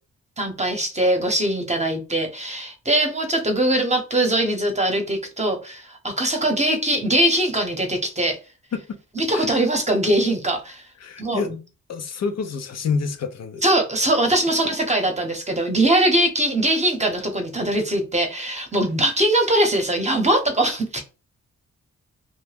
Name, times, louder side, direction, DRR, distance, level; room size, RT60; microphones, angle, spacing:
voice 1, 0.4-8.4 9.1-10.9 11.2-11.6 13.6-21.0, right 1 dB, 20° right, 0.9 m, -21 dB
voice 2, 11.0-11.5 11.9-13.6 14.6-14.7, left 5 dB, 55° left, 0.5 m, -28 dB
2.2 x 2.1 x 3.3 m
cardioid pair, 60°, 32 cm